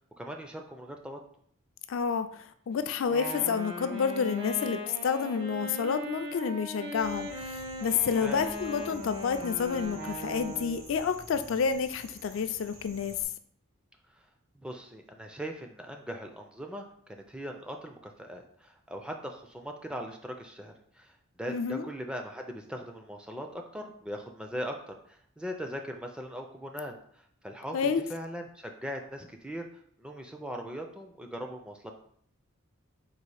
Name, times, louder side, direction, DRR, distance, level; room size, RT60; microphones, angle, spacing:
voice 1, 0.2-1.2 8.2-8.5 14.1-14.3 14.6-29.6 30.0-31.9, equal, 5° right, 3 dB, 0.3 m, -40 dB
voice 2, 1.9-13.2 21.5-21.9 27.7-28.0, left 6 dB, 65° left, 9 dB, 0.3 m, -29 dB
Wind instrument woodwind instrument, 3.0-10.9, equal, 55° right, 1.1 m, -39 dB
sound 1, 7.0-13.2, right 2 dB, 75° right, 0.9 m, -50 dB
4.0 x 2.4 x 4.7 m, 0.63 s
head